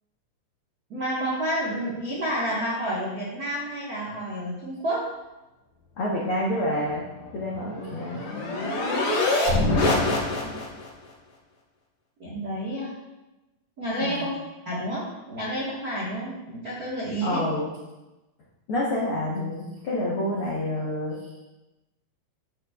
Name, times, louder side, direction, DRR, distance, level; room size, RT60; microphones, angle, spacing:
voice 1, 0.9-5.1 9.5-10.5 12.2-12.9 13.8-14.4 14.6-17.4, right 1 dB, 70° right, -7 dB, 0.8 m, -30 dB
voice 2, 6.0-7.1 7.3-8.2 14.0-14.2 17.2-17.7 18.7-21.2, left 1 dB, 75° left, -5 dB, 1.2 m, -28 dB
sound 1, 7.2-10.9, left 2 dB, 55° left, 2.0 m, -25 dB
10.5 x 7.3 x 2.4 m, 1.0 s
omnidirectional pair, 4.3 m